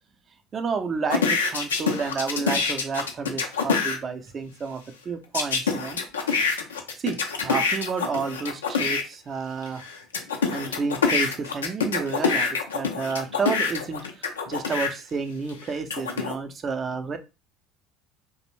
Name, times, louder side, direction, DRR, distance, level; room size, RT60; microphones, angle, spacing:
voice 1, 0.5-6.0 7.0-9.8 10.5-17.2, right 5 dB, 35° right, 8 dB, 0.5 m, -30 dB
sound 1, 1.1-4.0 5.3-9.0 9.6-14.9 15.5-16.3, left 5 dB, 90° left, 0.4 m, -25 dB
2.5 x 2.0 x 3.0 m, 0.27 s
hypercardioid pair, 70°, 0 cm